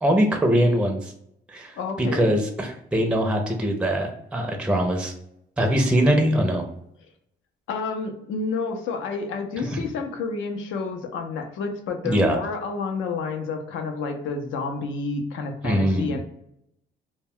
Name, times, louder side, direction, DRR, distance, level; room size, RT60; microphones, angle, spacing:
voice 1, 0.0-1.1 1.5-1.7 2.0-5.1 5.6-6.6 9.6-9.8 12.0-12.4 15.6-16.2, equal, 5° right, 3 dB, 0.4 m, -22 dB
voice 2, 1.8-2.3 7.7-16.2, left 4 dB, 80° left, 5 dB, 0.5 m, -30 dB
2.2 x 2.1 x 3.5 m, 0.77 s
cardioid pair, 90°, 20 cm